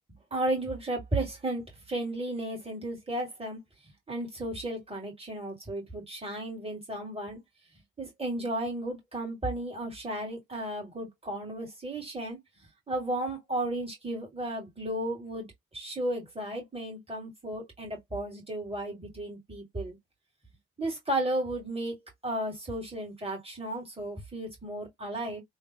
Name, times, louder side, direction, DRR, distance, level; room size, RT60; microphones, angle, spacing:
voice 1, 0.3-3.6 4.1-7.4 8.0-12.4 12.9-15.5 15.7-20.0 20.8-25.4, right 1 dB, 15° right, 1.9 m, -34 dB
3.1 x 2.1 x 2.7 m
figure-of-eight pair, 40°, 35 cm